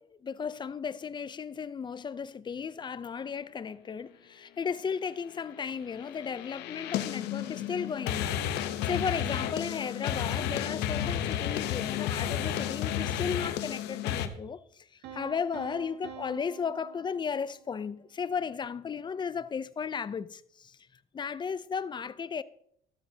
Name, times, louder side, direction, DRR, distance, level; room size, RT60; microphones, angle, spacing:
voice 1, 0.0-14.9 15.1-20.8 21.1-22.4, left 6 dB, 25° left, 0.5 m, -35 dB
sound 1, 5.9-14.3, left 10 dB, 85° left, 0.9 m, -32 dB
Piano, 15.0-17.9, right 8 dB, 85° right, 1.6 m, -47 dB
13.5 x 12.5 x 2.8 m
cardioid pair, 110°, 17 cm